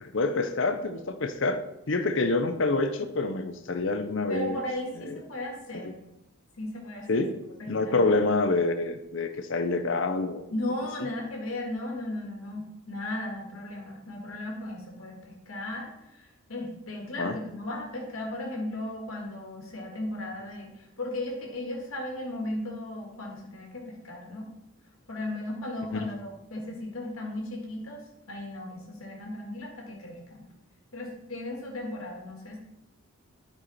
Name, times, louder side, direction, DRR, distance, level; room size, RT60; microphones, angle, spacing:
voice 1, 0.0-1.6 1.9-4.6 5.0-5.2 5.8-5.9 7.1-7.4 7.7-10.4 17.2-17.4 25.9-26.1, left 3 dB, 60° left, 8 dB, 0.7 m, -27 dB
voice 2, 4.3-5.9 6.6-7.2 7.6-8.2 10.5-24.5 25.1-30.4 30.9-32.6, left 1 dB, 80° left, 0 dB, 1.7 m, -36 dB
10.5 x 4.8 x 4.1 m, 0.86 s
head